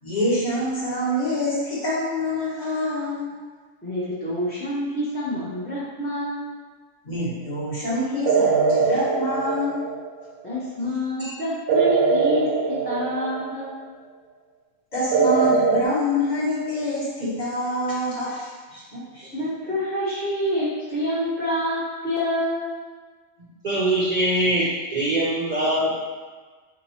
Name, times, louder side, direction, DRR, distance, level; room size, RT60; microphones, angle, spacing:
voice 1, 0.0-3.3 7.0-9.8 11.2-11.4 14.9-19.3, left 1 dB, 35° left, -8 dB, 1.0 m, -26 dB
voice 2, 3.8-6.6 10.4-13.7 19.3-22.7, left 1 dB, 10° left, -9 dB, 0.6 m, -27 dB
sound 1, 8.3-10.3 11.7-13.8 15.1-15.9, right 5 dB, 85° right, 1.0 m, -21 dB
voice 3, 23.6-26.0, right 1 dB, 45° right, -7 dB, 0.5 m, -22 dB
4.3 x 2.9 x 2.8 m, 1.4 s
omnidirectional pair, 1.4 m